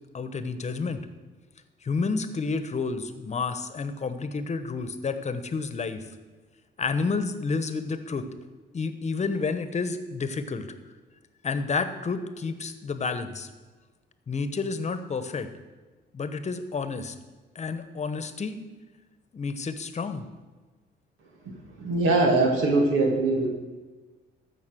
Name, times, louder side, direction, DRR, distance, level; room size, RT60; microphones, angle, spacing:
voice 1, 0.1-1.1 1.8-6.0 6.8-8.3 8.7-10.7 11.4-13.5 14.3-15.5 16.1-17.1 17.5-18.6 19.3-20.3, left 4 dB, 35° left, 11 dB, 1.1 m, -30 dB
voice 2, 21.8-23.5, right 2 dB, 85° right, 0 dB, 2.1 m, -22 dB
14.5 x 6.0 x 6.2 m, 1.3 s
cardioid pair, 90°, 20 cm